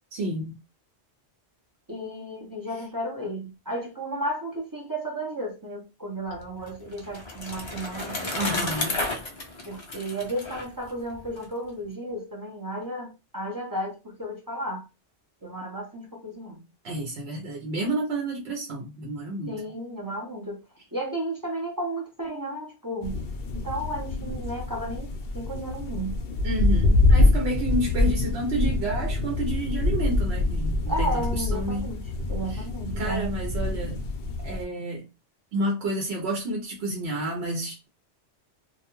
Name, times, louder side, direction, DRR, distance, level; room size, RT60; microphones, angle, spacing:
voice 1, 0.1-0.5 8.3-9.0 16.8-19.6 26.4-31.9 32.5-32.7 33.0-34.0 34.4-35.0 35.5-37.9, right 1 dB, 70° right, 0.9 m, -30 dB
voice 2, 1.9-8.7 9.7-14.9 15.4-16.6 19.5-20.6 20.9-23.2 23.5-26.2 30.9-32.0 32.3-33.3, right 1 dB, 25° right, 0.5 m, -33 dB
Bicycle, 6.4-11.4, left 2 dB, 35° left, 0.5 m, -32 dB
sound 1, 23.0-34.6, left 2 dB, 65° left, 0.7 m, -25 dB
2.4 x 2.1 x 2.9 m
omnidirectional pair, 1.1 m